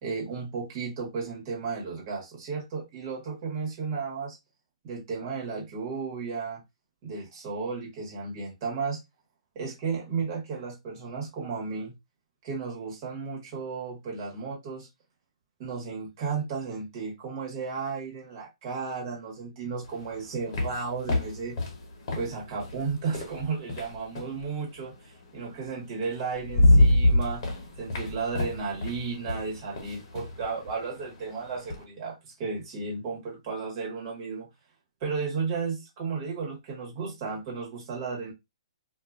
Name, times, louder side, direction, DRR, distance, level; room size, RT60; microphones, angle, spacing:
voice 1, 0.0-4.4 4.8-6.6 7.0-9.0 9.5-11.9 12.4-14.9 15.6-21.6 22.1-27.4 27.8-34.5 35.0-38.3, right 5 dB, 35° right, 1.3 m, -34 dB
sound 1, 19.8-24.4 25.7-25.8 26.2-31.8, left 1 dB, 45° left, 1.0 m, -26 dB
2.6 x 2.5 x 2.4 m
hypercardioid pair, 150°, 3 cm